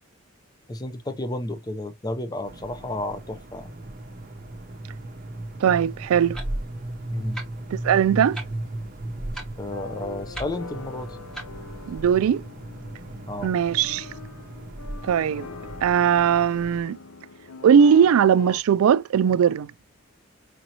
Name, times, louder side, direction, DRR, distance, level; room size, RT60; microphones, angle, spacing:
voice 1, 0.7-3.7 7.1-7.4 9.6-11.2 13.2-13.5, left 1 dB, 20° left, 0.4 m, -32 dB
sound 1, 2.4-16.8, right 1 dB, 40° right, 0.7 m, -36 dB
voice 2, 5.6-6.4 7.7-8.4 11.9-12.4 13.4-14.1 15.0-15.5 15.8-17.0 17.6-19.7, right 8 dB, 85° right, 0.3 m, -19 dB
Clock, 6.1-12.0, right 2 dB, 5° left, 1.0 m, -44 dB
sound 2, 9.7-18.6, left 4 dB, 80° left, 0.6 m, -42 dB
5.1 x 2.7 x 2.8 m
head